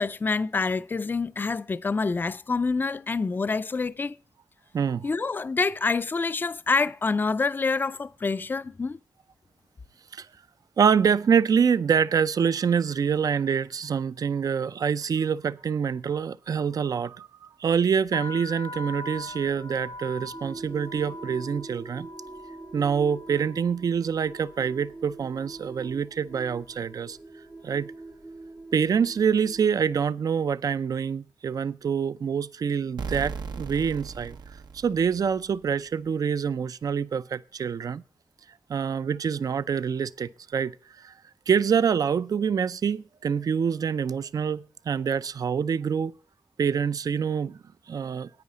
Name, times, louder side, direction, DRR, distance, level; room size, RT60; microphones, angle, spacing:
voice 1, 0.0-4.1 5.0-9.0, left 4 dB, 30° left, 0.4 m, -27 dB
voice 2, 4.7-5.1 10.1-10.3 10.8-17.3 17.6-22.1 22.7-27.2 27.6-27.9 28.7-34.4 34.7-38.0 38.7-41.1 41.5-46.1 46.6-47.6 47.9-48.3, right 7 dB, 60° right, 0.4 m, -26 dB
sound 1, 18.1-26.0 26.3-26.9 27.6-27.8 28.1-29.6, left 2 dB, 80° left, 1.1 m, -43 dB
sound 2, 20.3-29.9, right 3 dB, 20° right, 0.6 m, -44 dB
sound 3, 33.0-35.7, right 5 dB, 90° right, 0.9 m, -37 dB
9.6 x 9.4 x 4.9 m
wide cardioid pair, 145°, 7 cm